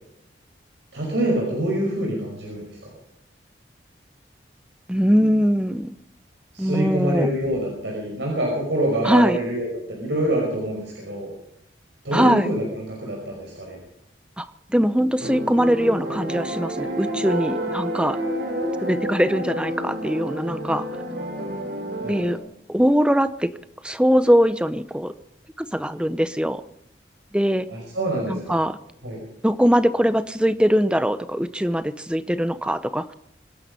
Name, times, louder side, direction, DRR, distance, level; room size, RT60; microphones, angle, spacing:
voice 1, 0.9-2.9 6.5-11.3 12.0-13.8 22.0-22.2 27.7-28.6 29.0-29.2, right 1 dB, 80° right, -1 dB, 5.4 m, -26 dB
voice 2, 4.9-5.9 6.6-7.3 9.0-9.4 12.1-12.5 14.4-14.5 14.7-18.2 18.8-20.9 22.1-22.4 22.7-23.5 23.8-25.1 25.6-26.6 27.3-27.7 28.3-28.8 29.4-33.1, equal, 5° right, 12 dB, 0.7 m, -21 dB
sound 1, 15.2-22.4, right 1 dB, 55° right, 3.1 m, -29 dB
25.5 x 10.5 x 5.4 m, 0.80 s
head